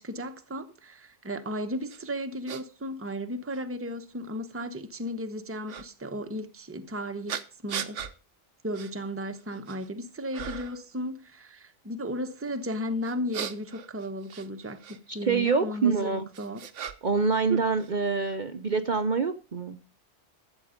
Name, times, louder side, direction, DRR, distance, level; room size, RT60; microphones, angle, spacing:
voice 1, 0.0-7.4 7.6-8.0 8.6-16.6, equal, 10° right, 0.9 m, -35 dB
sound 1, 1.9-2.0 2.5-2.6 3.5-3.6 5.7-5.9 7.3-8.1 8.7-8.9 9.4-9.9 10.3-10.8 13.0-15.0 15.9-17.2 17.5-18.4, right 8 dB, 80° right, 1.2 m, -37 dB
voice 2, 15.1-16.3 17.0-19.8, right 4 dB, 45° right, 0.8 m, -26 dB
13.0 x 8.1 x 5.1 m
omnidirectional pair, 1.2 m